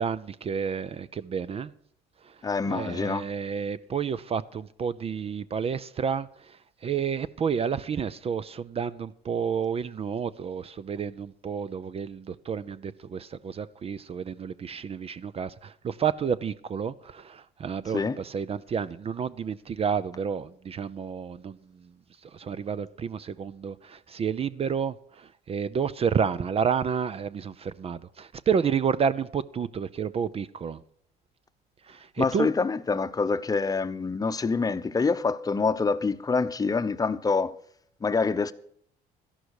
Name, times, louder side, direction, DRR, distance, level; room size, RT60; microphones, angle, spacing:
voice 1, 0.0-1.7 2.2-21.9 22.2-30.8 31.9-32.5, right 7 dB, 35° right, 0.6 m, -30 dB
voice 2, 2.4-3.2 17.9-18.2 32.2-37.5 38.0-38.5, left 4 dB, 20° left, 0.8 m, -26 dB
13.0 x 11.5 x 4.8 m
cardioid pair, 110°, 17 cm